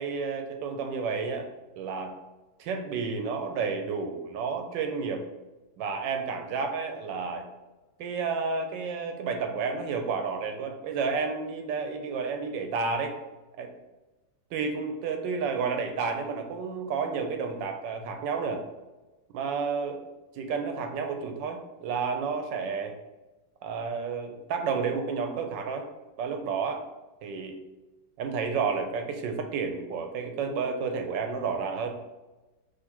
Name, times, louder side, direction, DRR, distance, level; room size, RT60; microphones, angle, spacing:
voice 1, 0.0-1.5 1.8-2.2 2.6-5.2 5.8-7.5 8.0-13.1 13.6-13.7 14.5-18.6 19.3-20.0 20.3-22.9 23.6-25.9 26.2-26.8 27.2-27.6 28.2-32.0, right 5 dB, 75° right, 5 dB, 1.2 m, -31 dB
3.8 x 2.8 x 4.2 m, 1.1 s
omnidirectional pair, 2.1 m